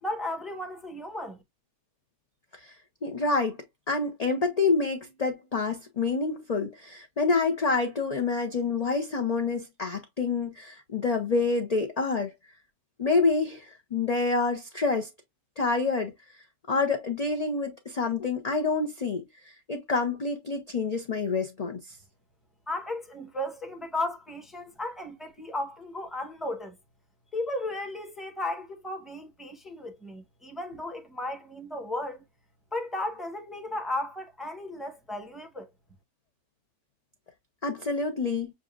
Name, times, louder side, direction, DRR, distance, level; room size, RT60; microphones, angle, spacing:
voice 1, 0.0-1.4 22.7-26.8 27.3-32.2 32.7-35.7, left 1 dB, ahead, 0.8 m, -35 dB
voice 2, 3.0-3.6 3.9-12.3 13.0-15.1 15.6-16.1 16.7-21.8 37.6-38.5, left 4 dB, 45° left, 0.5 m, -27 dB
7.0 x 2.5 x 2.4 m
omnidirectional pair, 1.7 m